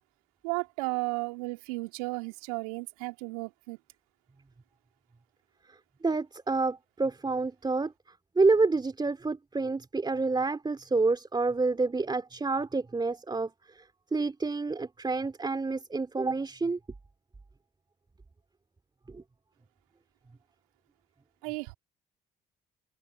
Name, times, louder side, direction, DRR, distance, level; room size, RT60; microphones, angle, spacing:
voice 1, 0.4-3.8 21.4-21.7, right 27 dB, 80° right, 3.2 m, -34 dB
voice 2, 6.0-7.9 8.3-13.8 14.1-16.8 19.1-19.2, right 3 dB, 25° right, 3.2 m, -28 dB
hypercardioid pair, 55°, 18 cm